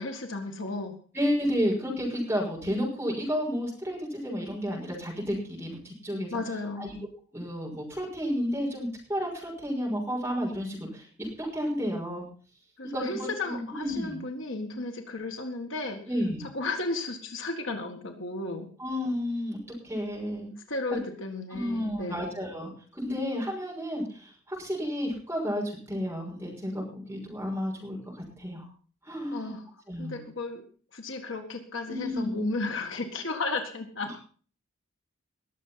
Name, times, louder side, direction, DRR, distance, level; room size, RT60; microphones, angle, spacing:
voice 1, 0.0-1.0 6.3-6.9 12.8-16.0 16.4-18.7 20.7-22.2 29.3-29.7 30.0-30.6 30.9-34.1, left 3 dB, 60° left, 4 dB, 1.8 m, -34 dB
voice 2, 1.1-6.4 6.8-7.0 7.3-12.3 12.9-14.2 16.1-16.4 18.8-19.6 19.8-20.5 21.5-28.7 29.0-29.5 29.9-30.2 31.9-32.4, equal, 10° right, -2 dB, 5.9 m, -31 dB
20.5 x 7.4 x 5.7 m, 0.42 s
head